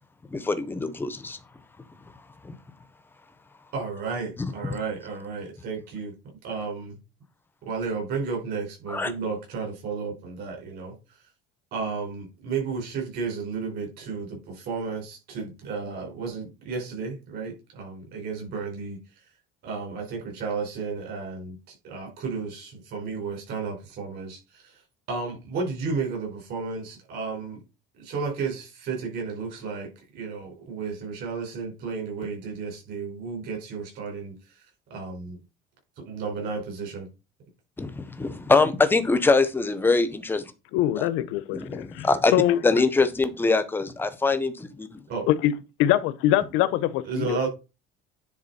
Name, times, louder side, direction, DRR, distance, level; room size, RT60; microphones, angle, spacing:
voice 1, 0.3-1.4 2.4-2.5 8.9-9.1 37.8-40.4 41.0-41.1 41.5-42.3 42.6-45.0, left 3 dB, 10° left, 0.6 m, -23 dB
voice 2, 3.7-6.1 6.4-7.0 7.6-10.9 11.7-19.0 19.6-24.7 25.1-27.6 28.0-34.6 34.9-35.4 36.0-37.1 45.1-45.3 47.0-47.5, right 4 dB, 50° right, 4.5 m, -33 dB
voice 3, 40.7-42.6 45.3-45.5 45.8-47.5, left 13 dB, 80° left, 0.8 m, -23 dB
9.7 x 4.0 x 4.1 m
cardioid pair, 175°, 21 cm